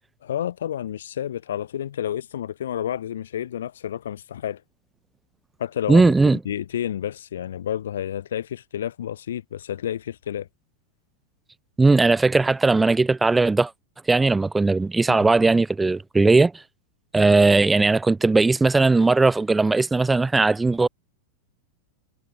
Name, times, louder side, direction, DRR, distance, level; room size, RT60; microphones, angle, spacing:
voice 1, 0.2-4.6 5.6-10.5 15.1-15.2, left 10 dB, 60° left, 0.7 m, -30 dB
voice 2, 5.9-6.4 11.8-13.7 14.1-16.6 17.1-20.9, right 3 dB, 10° right, 0.4 m, -18 dB
figure-of-eight pair, 90°, 0 cm